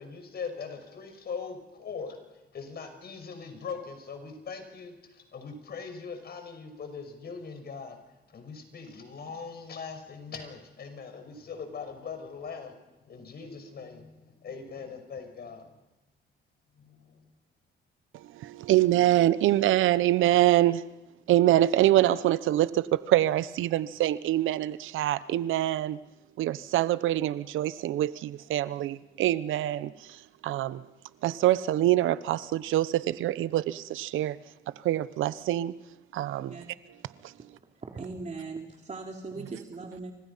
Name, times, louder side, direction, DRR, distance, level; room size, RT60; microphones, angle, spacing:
voice 1, 0.0-8.0 8.3-15.8 16.7-17.3, left 5 dB, 55° left, 5.8 m, -41 dB
voice 2, 18.3-20.8 21.3-26.0 26.4-29.9 30.4-30.8 31.2-34.4 34.8-35.7 36.1-36.5, right 14 dB, 85° right, 0.9 m, -25 dB
voice 3, 37.8-40.1, right 3 dB, 35° right, 3.1 m, -39 dB
30.0 x 25.5 x 5.7 m
cardioid pair, 90°, 20 cm